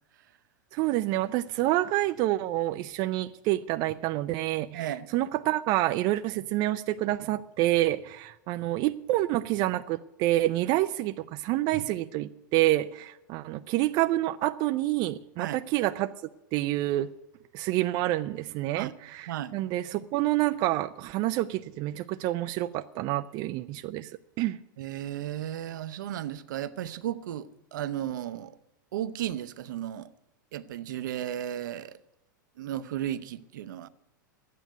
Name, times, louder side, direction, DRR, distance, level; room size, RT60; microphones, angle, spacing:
voice 1, 0.7-16.1 16.5-17.1 17.5-24.1 24.4-24.6, right 16 dB, 40° right, 0.5 m, -28 dB
voice 2, 4.7-5.1 15.4-15.6 18.7-18.9 19.3-19.6 24.8-28.6 28.9-30.1 30.5-32.0 32.6-33.9, right 11 dB, 70° right, 0.8 m, -34 dB
12.0 x 9.4 x 9.3 m
hypercardioid pair, 115°, 11 cm